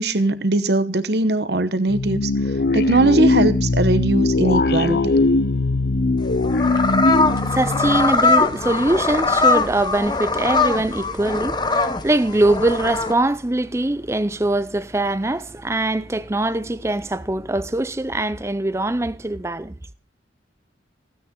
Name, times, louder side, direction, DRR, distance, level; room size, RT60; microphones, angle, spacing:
voice 1, 0.0-2.2 2.7-5.1, right 2 dB, 60° right, 1.0 m, -20 dB
sound 1, 1.9-9.1, left 2 dB, 55° left, 0.5 m, -20 dB
sound 2, 6.2-13.1, left 3 dB, 25° left, 0.8 m, -21 dB
voice 2, 7.4-19.7, right 1 dB, 15° right, 0.5 m, -22 dB
16.0 x 9.1 x 3.7 m
head